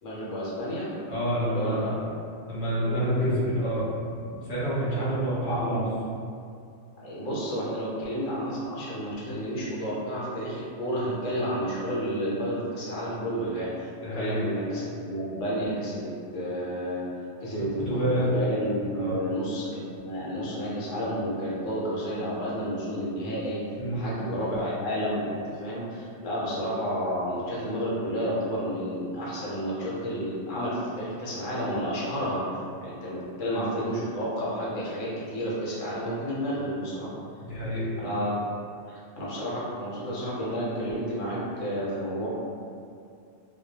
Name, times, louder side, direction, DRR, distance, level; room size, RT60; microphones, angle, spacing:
voice 1, 0.0-0.9 1.5-1.9 2.8-3.0 5.3-6.1 7.0-17.1 17.4-23.6 23.9-37.1 38.0-38.3 38.9-42.3, equal, 75° left, -7 dB, 1.0 m, -31 dB
voice 2, 1.1-2.0 2.5-3.9 4.4-5.9 14.0-14.4 17.9-18.3 18.9-19.2 23.7-24.0 37.4-37.9, right 1 dB, 55° left, -8 dB, 0.6 m, -28 dB
2.2 x 2.1 x 2.7 m, 2.4 s
omnidirectional pair, 1.3 m